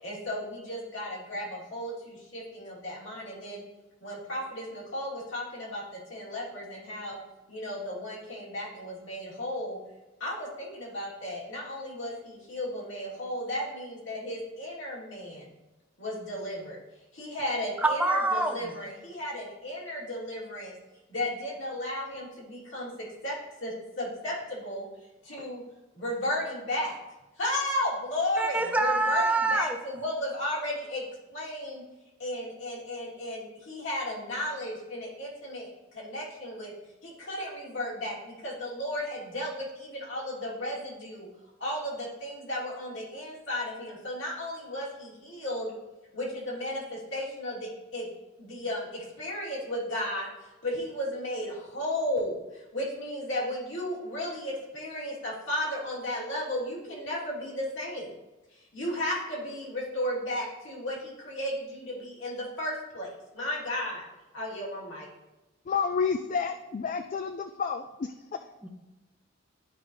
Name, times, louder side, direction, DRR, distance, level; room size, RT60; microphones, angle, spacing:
voice 1, 0.0-3.6 4.0-7.2 7.5-9.8 10.2-15.5 16.0-16.8 17.1-20.7 21.1-22.9 23.2-23.3 23.6-24.8 25.2-25.6 25.9-27.0 27.4-31.0 31.3-31.8 32.2-36.7 37.0-41.3 41.6-45.7 46.1-48.1 48.4-50.3 50.6-58.1 58.5-64.0 64.3-65.1, left 1 dB, 65° left, -5 dB, 2.8 m, -34 dB
voice 2, 17.8-18.7 28.4-29.8 68.6-68.7, right 2 dB, 5° right, 3 dB, 0.7 m, -26 dB
voice 3, 65.7-68.5, left 5 dB, 40° left, 8 dB, 0.3 m, -30 dB
11.5 x 5.2 x 3.1 m, 1.0 s
head